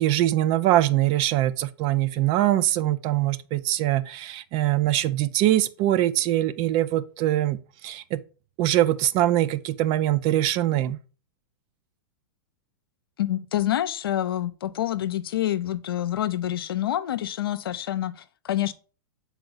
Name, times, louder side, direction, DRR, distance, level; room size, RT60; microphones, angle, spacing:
voice 1, 0.0-7.6 7.8-8.2 8.6-11.0, right 13 dB, 45° right, 0.5 m, -23 dB
voice 2, 13.2-18.7, left 12 dB, 75° left, 0.6 m, -27 dB
6.8 x 4.3 x 3.9 m
hypercardioid pair, 115°, 12 cm